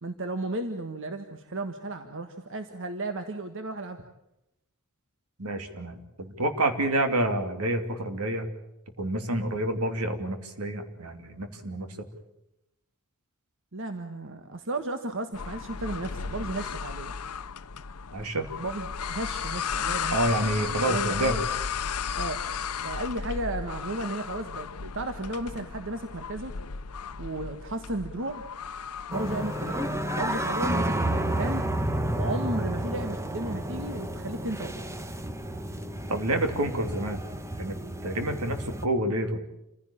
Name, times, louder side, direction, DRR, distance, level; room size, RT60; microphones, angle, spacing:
voice 1, 0.0-4.0 13.7-17.1 18.6-21.4 22.2-22.4 22.8-26.5 27.2-28.4 29.1-31.7 32.1-34.9, right 2 dB, 60° right, 7 dB, 1.6 m, -34 dB
voice 2, 5.4-8.4 9.0-11.9 18.1-18.5 20.1-21.4 36.1-37.2 37.6-37.7 38.0-39.4, right 1 dB, 80° right, 7 dB, 2.9 m, -28 dB
sound 1, 15.3-30.6, left 6 dB, 90° left, 0.8 m, -34 dB
sound 2, 29.1-38.9, right 1 dB, 15° right, 1.2 m, -31 dB
28.0 x 16.0 x 8.8 m, 0.86 s
head